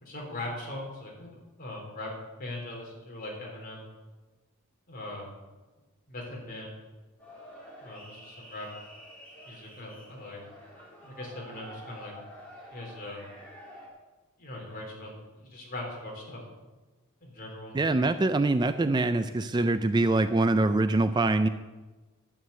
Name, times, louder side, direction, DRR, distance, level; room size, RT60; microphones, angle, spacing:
voice 1, 0.0-2.1 2.4-3.9 4.9-5.3 6.1-6.8 7.8-8.7 9.5-10.4 11.0-12.1 12.7-13.2 14.4-16.4 17.2-18.0, left 1 dB, 40° left, -2 dB, 3.6 m, -40 dB
sound 1, 7.2-13.9, equal, 5° left, 3.1 m, -49 dB
voice 2, 17.7-21.5, right 2 dB, 20° right, 10 dB, 0.3 m, -24 dB
10.0 x 8.0 x 7.9 m, 1.2 s
head